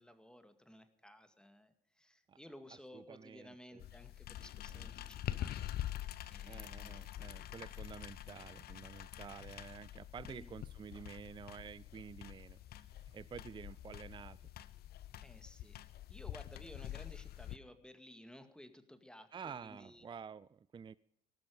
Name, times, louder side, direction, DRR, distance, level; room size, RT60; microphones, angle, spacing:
voice 1, 0.0-5.5 5.9-7.0 10.2-10.5 15.2-20.1, left 1 dB, 5° left, 9 dB, 2.1 m, -56 dB
voice 2, 2.9-3.8 4.7-4.9 6.5-14.4 19.3-21.0, right 6 dB, 25° right, 19 dB, 0.5 m, -50 dB
sound 1, 3.8-17.6, left 12 dB, 50° left, 0.8 m, -46 dB
19.5 x 12.5 x 5.2 m, 0.73 s
figure-of-eight pair, 50°, 20 cm